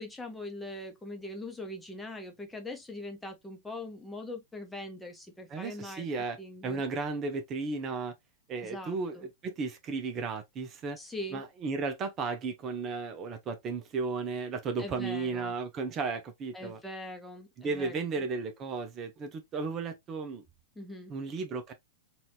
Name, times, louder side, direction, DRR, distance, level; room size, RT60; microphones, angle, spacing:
voice 1, 0.0-6.1 6.4-6.8 8.6-9.3 11.0-11.4 14.8-15.5 16.5-18.3 20.7-21.1, left 1 dB, 10° left, 1.1 m, -42 dB
voice 2, 5.5-6.4 6.6-8.1 8.5-11.0 11.3-16.8 17.6-20.4 21.1-21.7, right 4 dB, 30° right, 0.8 m, -34 dB
4.2 x 2.7 x 2.9 m
figure-of-eight pair, 100°, 0 cm